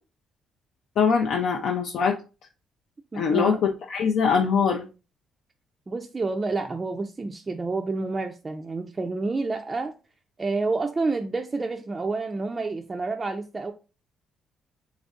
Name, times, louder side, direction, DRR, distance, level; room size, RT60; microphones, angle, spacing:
voice 1, 1.0-2.1 3.1-3.6 3.9-4.9, left 6 dB, 75° left, 0.4 m, -22 dB
voice 2, 3.1-3.6 5.9-9.9 10.4-13.7, right 3 dB, 25° right, 0.3 m, -29 dB
3.2 x 2.5 x 3.6 m
cardioid pair, 90°, 0 cm